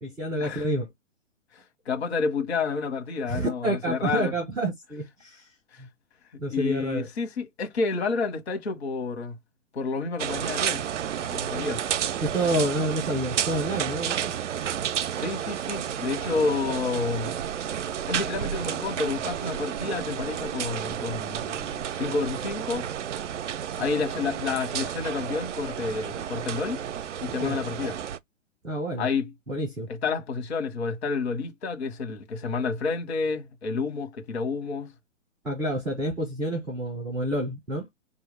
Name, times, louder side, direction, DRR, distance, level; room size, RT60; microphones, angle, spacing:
voice 1, 0.0-0.9 3.3-5.5 6.4-7.1 12.2-14.3 27.4-27.6 28.6-29.1 29.5-29.9 35.4-37.9, right 1 dB, ahead, 0.4 m, -28 dB
voice 2, 1.5-4.3 5.7-5.8 6.5-9.4 9.7-10.8 11.3-11.9 15.1-17.3 18.1-22.8 23.8-26.8 27.2-28.0 29.0-29.3 29.9-34.9, left 4 dB, 55° left, 1.3 m, -29 dB
sound 1, 10.2-28.2, right 9 dB, 70° right, 0.5 m, -31 dB
4.7 x 2.7 x 3.2 m
figure-of-eight pair, 130°, 39 cm